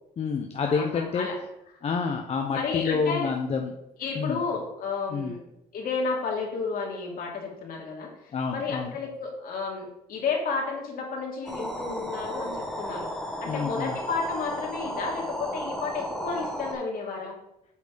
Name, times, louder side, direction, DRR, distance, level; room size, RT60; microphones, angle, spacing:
voice 1, 0.2-1.3 1.8-3.7 4.2-4.4 5.1-5.3 8.3-8.9 13.5-13.9, left 5 dB, 40° left, 3 dB, 0.8 m, -28 dB
voice 2, 0.7-1.4 2.5-3.3 4.0-5.4 5.7-13.1 13.4-17.4, left 4 dB, 60° left, -1 dB, 2.6 m, -32 dB
sound 1, 11.5-16.7, equal, ahead, 1.6 m, -34 dB
8.3 x 4.3 x 5.1 m, 0.85 s
cardioid pair, 110°, 17 cm